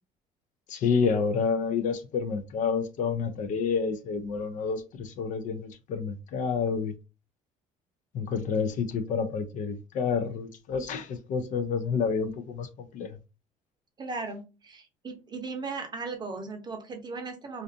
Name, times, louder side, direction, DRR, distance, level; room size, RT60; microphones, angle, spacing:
voice 1, 0.7-6.9 8.1-13.2, left 5 dB, 55° left, 0.4 m, -29 dB
voice 2, 14.0-17.6, right 4 dB, 30° right, 0.7 m, -37 dB
2.4 x 2.4 x 2.5 m
cardioid pair, 105°, 16 cm